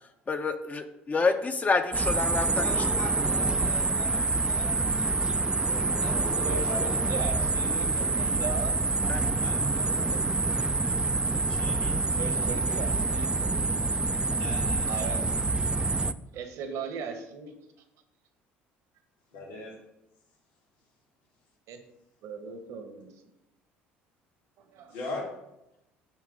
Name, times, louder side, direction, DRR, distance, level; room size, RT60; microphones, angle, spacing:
voice 1, 0.3-2.6 9.1-9.2, left 4 dB, 30° left, 7 dB, 0.6 m, -27 dB
sound 1, 1.9-16.1, right 3 dB, 15° right, 0.3 m, -27 dB
voice 2, 2.5-6.8 7.3-7.5 9.4-10.2 11.5-12.5 14.3-14.9 19.3-19.7 24.9-25.3, left 2 dB, 75° left, -3 dB, 2.1 m, -41 dB
voice 3, 6.4-8.8 12.2-13.3 14.9-15.2 16.3-17.6 21.7-21.8 22.2-23.1 24.7-24.9, right 5 dB, 65° right, 6 dB, 1.0 m, -38 dB
7.4 x 3.0 x 5.0 m, 0.89 s
hypercardioid pair, 65°, 6 cm